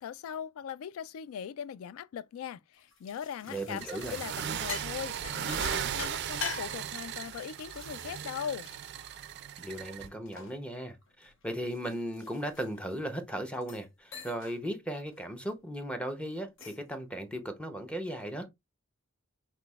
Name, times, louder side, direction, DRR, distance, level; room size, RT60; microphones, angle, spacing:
voice 1, 0.0-8.7, left 8 dB, 90° left, 0.3 m, -40 dB
sound 1, 2.8-9.6 10.0-13.0 13.5-13.9 14.1-14.6 14.9-15.2 16.3-16.9, left 5 dB, 65° left, 0.9 m, -44 dB
voice 2, 3.5-4.2 9.6-18.5, right 1 dB, 5° left, 0.7 m, -37 dB
sound 2, 3.8-10.1, right 9 dB, 55° right, 0.3 m, -37 dB
5.8 x 3.0 x 2.3 m
head